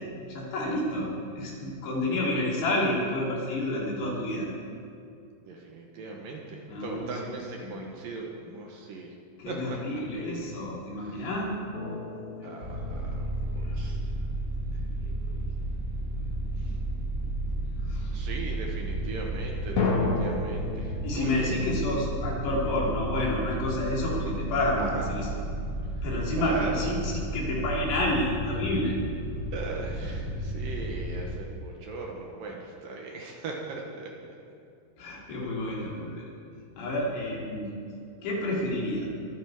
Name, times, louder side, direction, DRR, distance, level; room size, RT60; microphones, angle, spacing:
voice 1, 0.3-4.5 6.7-7.8 9.4-11.5 12.4-12.6 13.4-14.0 14.8-15.4 17.9-18.2 21.0-24.8 25.1-25.3 26.0-29.0 35.0-36.3 36.8-37.7 38.2-39.1, left 1 dB, 75° left, -3 dB, 4.9 m, -30 dB
voice 2, 5.4-9.1 9.4-10.0 11.0-11.3 12.4-13.1 13.6-14.0 16.6-16.7 18.1-21.6 24.8-25.1 26.3-26.9 29.5-34.1, right 3 dB, 65° right, 0 dB, 2.5 m, -38 dB
sound 1, 11.7-14.8 19.8-23.4, left 3 dB, 55° left, 1.6 m, -34 dB
sound 2, 12.6-31.3, right 1 dB, 25° right, 2.2 m, -33 dB
22.5 x 9.5 x 4.7 m, 2.5 s
omnidirectional pair, 4.9 m